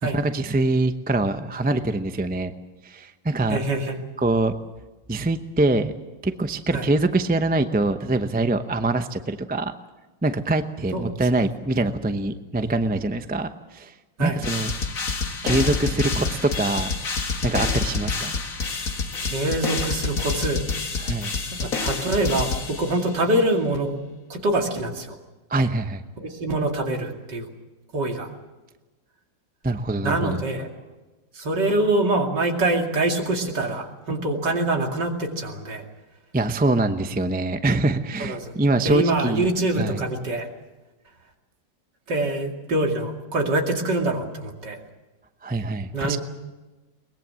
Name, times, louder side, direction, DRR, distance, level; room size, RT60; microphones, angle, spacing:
voice 1, 0.0-2.5 2.8-3.6 4.2-4.5 5.1-5.9 6.2-9.7 10.2-13.9 14.2-14.7 15.4-17.0 17.4-18.3 21.0-21.3 25.5-26.0 29.6-30.4 36.3-39.4 39.8-40.0 45.4-46.2, right 2 dB, 15° right, 8 dB, 0.3 m, -24 dB
voice 2, 3.5-4.0 6.7-6.9 10.9-11.1 14.2-14.4 19.2-20.6 21.6-24.0 24.3-25.2 26.2-27.5 27.9-28.3 30.0-30.7 31.3-35.8 38.2-38.6 38.8-40.5 42.1-44.8 45.9-46.2, right 2 dB, 65° right, 2 dB, 3.1 m, -24 dB
sound 1, 14.4-23.2, left 4 dB, 45° left, 2.1 m, -28 dB
22.5 x 20.5 x 7.6 m, 1.1 s
omnidirectional pair, 2.0 m